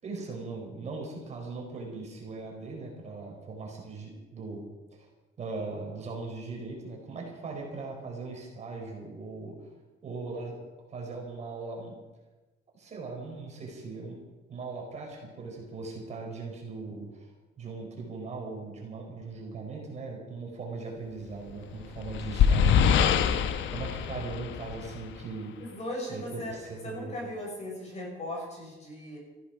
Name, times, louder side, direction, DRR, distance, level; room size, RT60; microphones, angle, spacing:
voice 1, 0.0-4.6 5.0-5.1 5.4-9.6 10.0-10.6 10.9-12.0 12.7-14.2 14.5-17.3 17.6-23.3 23.7-25.5 26.1-27.1, right 3 dB, 35° right, 0 dB, 4.6 m, -39 dB
sound 1, 21.6-25.2, left 7 dB, 75° left, 1.0 m, -25 dB
voice 2, 25.7-26.6 26.8-29.2, left 1 dB, 35° left, -1 dB, 6.3 m, -37 dB
18.5 x 15.0 x 5.1 m, 1.2 s
cardioid pair, 155°, 19 cm